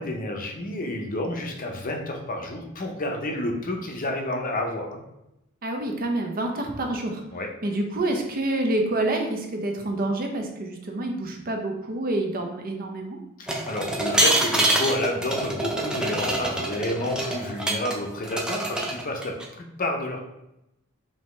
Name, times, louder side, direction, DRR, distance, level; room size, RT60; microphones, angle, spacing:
voice 1, 0.0-5.0 7.3-7.5 13.4-20.2, left 1 dB, 40° left, 3 dB, 0.7 m, -30 dB
voice 2, 5.6-7.2 7.6-13.2, right 1 dB, 45° right, 3 dB, 0.7 m, -27 dB
sound 1, 13.5-18.0 18.2-19.4, right 1 dB, 5° right, 0.5 m, -25 dB
4.9 x 2.8 x 3.2 m, 0.86 s
head